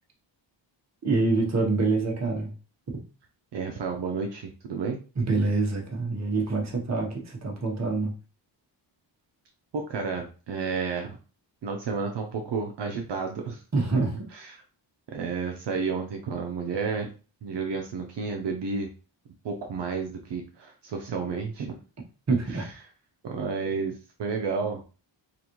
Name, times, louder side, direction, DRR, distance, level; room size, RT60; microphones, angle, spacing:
voice 1, 1.0-2.5 5.2-8.1 13.7-14.2 22.3-22.7, right 3 dB, 35° right, 1 dB, 1.0 m, -26 dB
voice 2, 3.5-5.0 9.7-11.2 11.6-13.6 14.3-14.6 15.1-17.1 17.4-18.9 19.4-21.8 22.5-22.7 23.2-24.8, right 5 dB, 65° right, 2 dB, 0.7 m, -31 dB
3.9 x 2.5 x 3.0 m, 0.35 s
wide cardioid pair, 160°, 45 cm